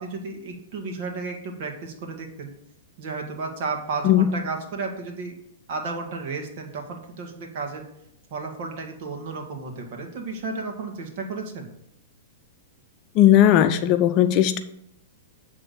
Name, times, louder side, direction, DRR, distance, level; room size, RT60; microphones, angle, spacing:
voice 1, 0.0-2.5 3.0-5.3 5.7-7.8 8.3-11.7, right 4 dB, 55° right, 3 dB, 2.0 m, -33 dB
voice 2, 13.2-14.6, left 11 dB, 40° left, 9 dB, 0.6 m, -17 dB
8.7 x 3.7 x 6.9 m, 0.75 s
hypercardioid pair, 125°, 0 cm